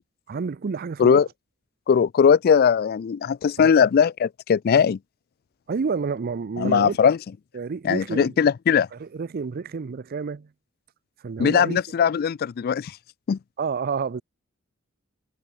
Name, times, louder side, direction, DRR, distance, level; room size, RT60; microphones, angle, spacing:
voice 1, 0.3-1.2 3.6-3.7 5.7-7.1 7.5-8.3 9.0-10.5 11.2-11.8 13.6-14.2, right 5 dB, 45° right, 0.4 m, -29 dB
voice 2, 1.9-5.0 6.6-7.2 7.8-8.9 11.4-12.9 13.3-13.4, left 7 dB, 45° left, 0.3 m, -19 dB
head